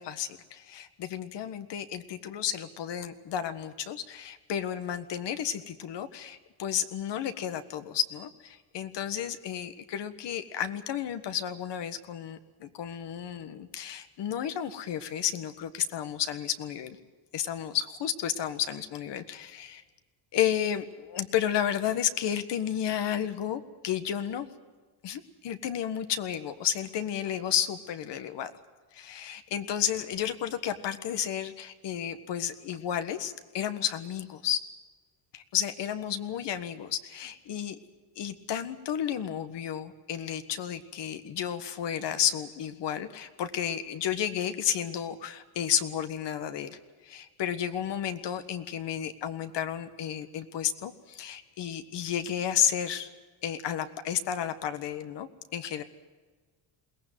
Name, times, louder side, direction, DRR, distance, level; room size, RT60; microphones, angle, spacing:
voice 1, 0.0-17.0 17.3-19.8 20.3-24.5 25.0-28.5 28.9-34.6 35.3-37.8 38.2-46.8 47.0-53.1 53.4-55.8, left 9 dB, 55° left, 10 dB, 1.6 m, -32 dB
22.0 x 18.5 x 9.3 m, 1.4 s
cardioid pair, 140°, 50 cm